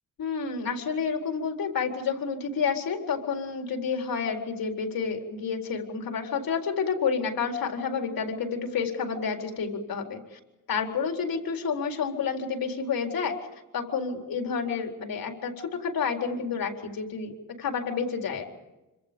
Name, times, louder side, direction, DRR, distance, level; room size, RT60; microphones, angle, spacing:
voice 1, 0.2-10.4 10.7-18.4, left 5 dB, 70° left, 3 dB, 4.3 m, -30 dB
26.0 x 26.0 x 5.3 m, 1.0 s
cardioid pair, 120°, 36 cm